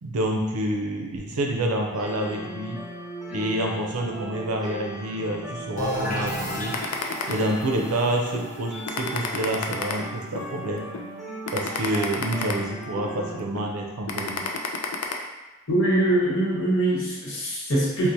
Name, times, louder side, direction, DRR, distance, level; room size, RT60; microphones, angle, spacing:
voice 1, 0.0-2.8 3.3-6.8 7.3-10.9 11.5-14.4, right 1 dB, 80° right, 1 dB, 0.5 m, -28 dB
sound 1, 1.8-13.4, right 1 dB, ahead, 0.6 m, -39 dB
sound 2, 5.8-11.3, equal, 35° left, 0.6 m, -34 dB
sound 3, 6.7-7.9 8.3-8.5 8.9-10.5 10.9-11.1 11.5-13.1 13.6-13.7 14.1-15.1, left 5 dB, 75° left, 0.4 m, -30 dB
voice 2, 15.7-18.1, right 1 dB, 60° left, -6 dB, 1.0 m, -23 dB
4.4 x 2.0 x 2.6 m, 1.1 s
head